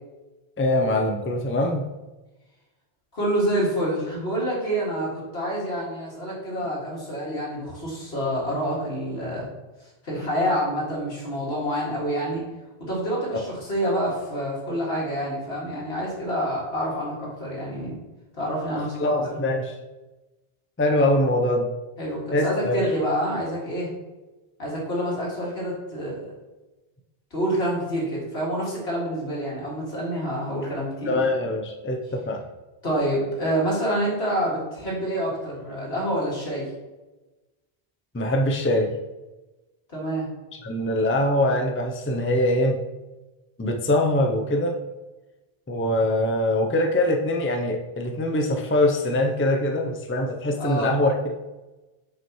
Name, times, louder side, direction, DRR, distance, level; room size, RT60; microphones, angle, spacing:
voice 1, 0.6-1.9 13.3-13.4 18.7-19.7 20.8-21.7 22.3-22.8 31.1-32.4 38.1-38.9 40.6-42.8 43.6-44.8 45.7-51.4, left 1 dB, 15° left, 3 dB, 0.5 m, -23 dB
voice 2, 3.1-9.5 10.0-12.4 12.8-18.0 18.3-19.1 22.0-23.9 24.6-26.3 27.3-31.2 32.8-36.7 39.9-40.3 50.6-51.0, equal, 80° left, -5 dB, 2.6 m, -27 dB
7.7 x 5.4 x 3.1 m, 1.1 s
omnidirectional pair, 1.0 m